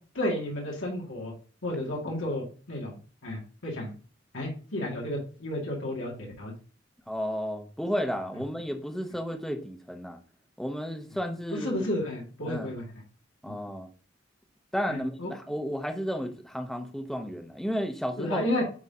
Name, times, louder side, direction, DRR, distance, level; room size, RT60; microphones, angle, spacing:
voice 1, 0.1-1.3 1.6-3.0 3.2-3.9 4.3-6.5 11.5-12.8 14.9-15.3 18.2-18.6, left 1 dB, 85° left, 2.2 m, -32 dB
voice 2, 7.1-10.2 10.6-11.9 12.5-12.7 13.4-13.9 14.7-18.5, equal, ahead, 0.8 m, -32 dB
9.4 x 3.9 x 2.8 m
head